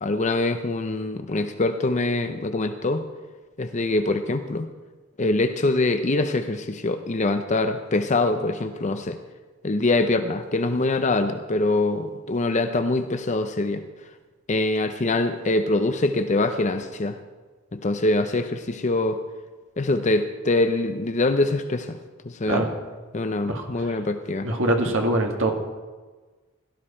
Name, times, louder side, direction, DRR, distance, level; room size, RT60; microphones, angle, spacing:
voice 1, 0.0-3.0 3.6-4.7 5.2-9.2 9.6-13.8 14.5-17.2 17.7-19.2 19.8-22.0 22.2-22.6 23.1-24.5, left 2 dB, 35° left, 8 dB, 0.6 m, -24 dB
voice 2, 23.4-23.9 24.4-25.5, right 1 dB, 60° right, 2 dB, 2.1 m, -23 dB
17.0 x 12.5 x 4.3 m, 1.3 s
head